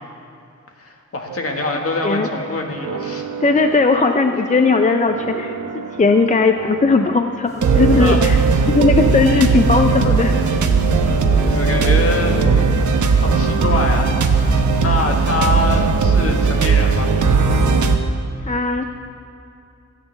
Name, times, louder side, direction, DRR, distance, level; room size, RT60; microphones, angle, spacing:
voice 1, 0.8-3.2 7.8-8.2 11.4-12.8 13.2-14.1 14.4-17.1, left 2 dB, 50° left, 2 dB, 1.6 m, -24 dB
sound 1, 1.3-2.4 2.7-7.1 7.6-18.0, right 4 dB, 85° right, 1.0 m, -18 dB
voice 2, 3.4-8.4 8.7-10.4 18.4-18.8, left 4 dB, 25° left, 5 dB, 0.5 m, -17 dB
sound 2, 7.4-15.3, equal, 10° left, 1.9 m, -36 dB
27.0 x 9.0 x 3.3 m, 2.6 s
wide cardioid pair, 140°, 29 cm